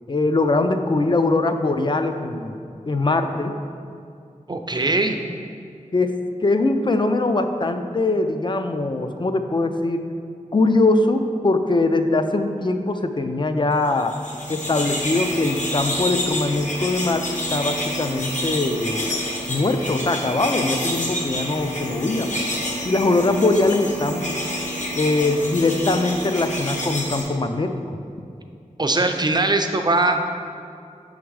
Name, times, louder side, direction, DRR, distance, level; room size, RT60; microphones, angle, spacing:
voice 1, 0.1-2.6 2.9-3.5 5.9-10.1 10.5-14.1 14.5-19.1 19.5-22.3 22.8-24.4 25.0-28.0, left 2 dB, 35° left, 7 dB, 0.4 m, -22 dB
voice 2, 4.5-5.2 28.8-30.2, right 2 dB, 30° right, 5 dB, 0.5 m, -20 dB
sound 1, 14.0-27.2, equal, 65° left, 1.0 m, -28 dB
6.1 x 3.6 x 4.7 m, 2.4 s
cardioid pair, 45°, 14 cm